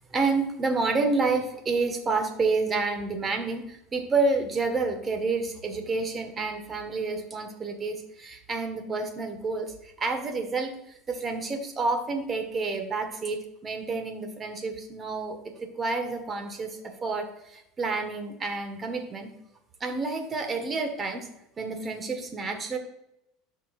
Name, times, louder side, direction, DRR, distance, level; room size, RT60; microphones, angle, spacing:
voice 1, 0.0-19.3 19.8-21.3 21.6-22.8, right 3 dB, 30° right, 6 dB, 1.6 m, -29 dB
12.5 x 4.7 x 2.5 m, 0.83 s
hypercardioid pair, 80°, 0 cm